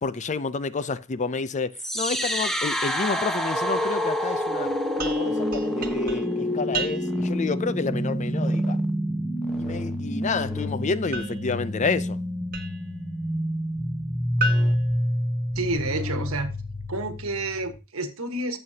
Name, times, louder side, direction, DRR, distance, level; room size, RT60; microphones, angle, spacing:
voice 1, 0.0-4.7 5.0-8.8 9.6-12.2, left 4 dB, 35° left, 0.5 m, -29 dB
sound 1, 1.7-17.8, equal, ahead, 1.1 m, -27 dB
sound 2, 5.0-7.4 11.1-13.0 14.4-15.9, right 2 dB, 40° right, 1.4 m, -35 dB
voice 2, 15.5-16.5 16.9-18.6, right 2 dB, 75° right, 1.3 m, -29 dB
12.5 x 7.7 x 2.8 m
head